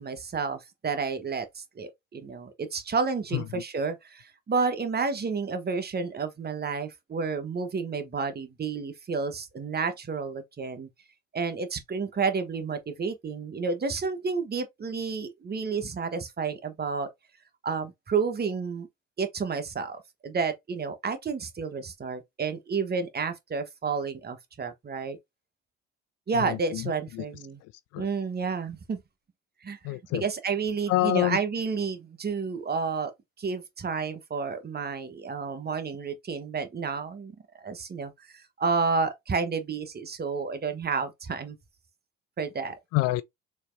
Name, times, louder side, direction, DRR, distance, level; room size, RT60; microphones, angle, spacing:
voice 1, 0.0-10.9 11.3-17.1 17.6-18.9 19.2-25.2 26.3-27.6 28.0-29.0 29.6-33.1 33.4-37.3 37.6-41.6 42.4-42.8, right 5 dB, 25° right, 1.2 m, -30 dB
voice 2, 3.3-3.6 26.3-27.2 27.6-28.1 29.8-30.2 30.9-31.4 42.9-43.2, left 18 dB, 45° left, 0.4 m, -28 dB
6.5 x 3.1 x 2.7 m
figure-of-eight pair, 50°, 37 cm